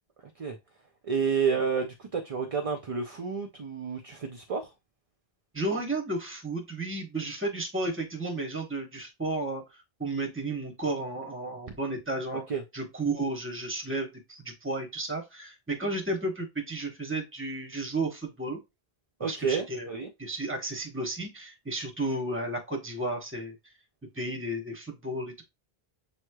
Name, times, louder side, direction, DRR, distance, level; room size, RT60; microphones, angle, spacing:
voice 1, 1.0-4.7 12.5-12.6 19.2-20.1, right 6 dB, 45° right, 0.5 m, -30 dB
voice 2, 5.5-9.6 10.0-12.4 12.7-18.6 19.2-23.5 24.1-25.4, right 2 dB, 15° right, 0.9 m, -33 dB
6.9 x 3.1 x 2.2 m
omnidirectional pair, 1.0 m